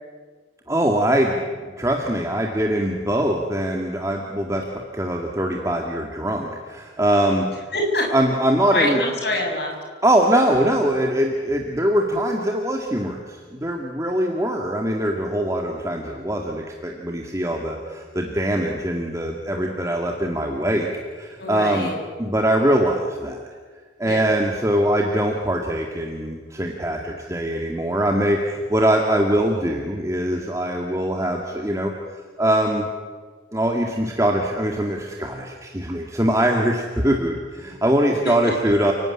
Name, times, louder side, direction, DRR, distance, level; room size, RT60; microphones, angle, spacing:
voice 1, 0.7-7.5 8.1-9.0 10.0-20.9 21.1-21.9 22.2-23.4 24.0-31.9 32.4-32.9 33.5-38.9, right 1 dB, 15° right, 1 dB, 2.1 m, -22 dB
voice 2, 7.7-8.1 8.7-9.7 21.4-22.0 24.0-24.2 38.2-38.5, left 1 dB, 60° left, 1 dB, 7.0 m, -25 dB
30.0 x 17.5 x 9.9 m, 1.5 s
head